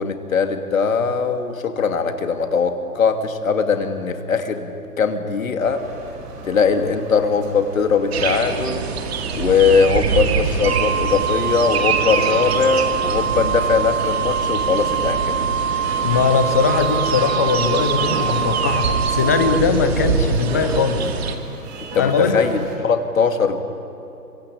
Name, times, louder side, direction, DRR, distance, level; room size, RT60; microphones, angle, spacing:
voice 1, 0.0-5.9 6.4-8.8 9.3-15.5 21.9-23.6, left 5 dB, 55° left, 6 dB, 2.8 m, -20 dB
sound 1, 5.6-22.8, right 3 dB, 20° right, 4.8 m, -36 dB
sound 2, 8.1-21.4, right 5 dB, 40° right, 2.4 m, -25 dB
Wind instrument woodwind instrument, 10.7-19.6, right 7 dB, 55° right, 0.6 m, -24 dB
voice 2, 16.0-21.1 22.0-22.4, left 5 dB, 10° left, 8 dB, 0.6 m, -20 dB
26.5 x 24.5 x 8.7 m, 2.9 s
figure-of-eight pair, 145°, 47 cm